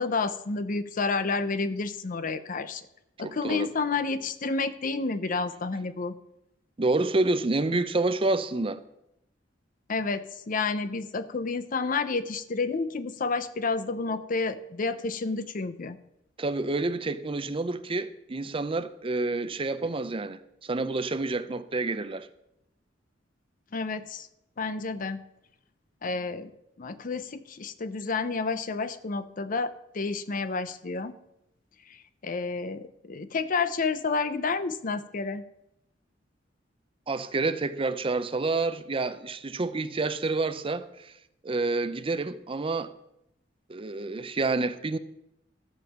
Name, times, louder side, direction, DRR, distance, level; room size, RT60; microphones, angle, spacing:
voice 1, 0.0-2.8 3.2-6.1 9.9-16.0 23.7-24.3 24.6-25.2 26.0-26.5 26.8-31.1 31.9-32.0 32.2-35.4, left 4 dB, 45° left, 0.6 m, -30 dB
voice 2, 3.2-3.7 6.8-8.8 16.4-22.3 37.1-41.1 41.4-42.9 43.7-45.0, right 3 dB, 30° right, 0.6 m, -28 dB
13.5 x 5.4 x 7.2 m
head